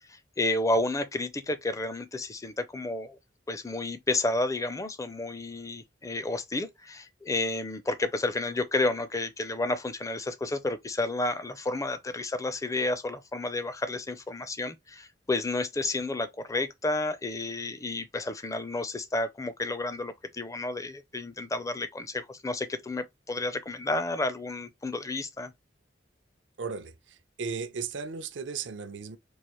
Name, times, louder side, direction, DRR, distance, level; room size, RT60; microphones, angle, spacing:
voice 1, 0.1-3.2 3.5-25.5, left 2 dB, 15° left, 0.4 m, -31 dB
voice 2, 26.6-29.2, right 5 dB, 75° right, 0.6 m, -36 dB
4.6 x 2.5 x 2.9 m
head